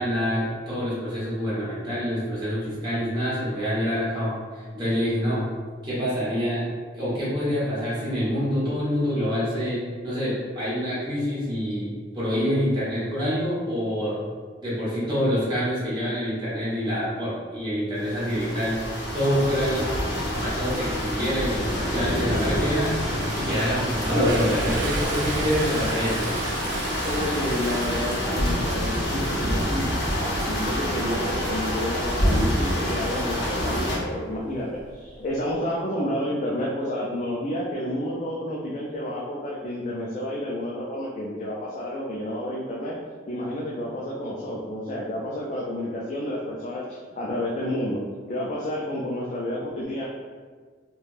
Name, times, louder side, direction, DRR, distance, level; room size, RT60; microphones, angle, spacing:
voice 1, 0.0-5.4 5.8-6.6 6.9-14.2 14.6-18.8 19.1-19.9 20.3-21.5 21.9-22.9 23.3-26.1, equal, 25° right, -10 dB, 1.1 m, -26 dB
sound 1, 18.0-34.0, equal, 65° left, 0.7 m, -27 dB
sound 2, 21.5-25.9, equal, 5° left, 0.9 m, -34 dB
Toilet flush, 24.0-29.2 29.6-29.9 34.4-34.5 34.8-35.5, right 1 dB, 65° right, 0.6 m, -30 dB
voice 2, 27.0-42.9 43.3-48.0 48.3-50.1, left 1 dB, 40° left, -5 dB, 0.3 m, -30 dB
3.2 x 2.2 x 2.4 m, 1.5 s
head